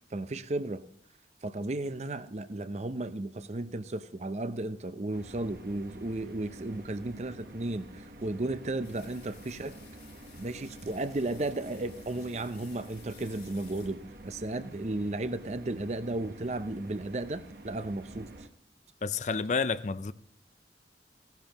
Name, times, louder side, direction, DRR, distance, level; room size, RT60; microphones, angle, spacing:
voice 1, 0.1-0.8 1.4-9.8 10.4-18.3, right 2 dB, 40° right, 0.6 m, -34 dB
sound 1, 5.1-18.5, right 1 dB, 55° right, 1.1 m, -48 dB
sound 2, 8.8-14.3, left 7 dB, 70° left, 4.2 m, -57 dB
voice 2, 19.0-20.1, left 4 dB, 40° left, 0.4 m, -30 dB
16.0 x 11.5 x 3.0 m
head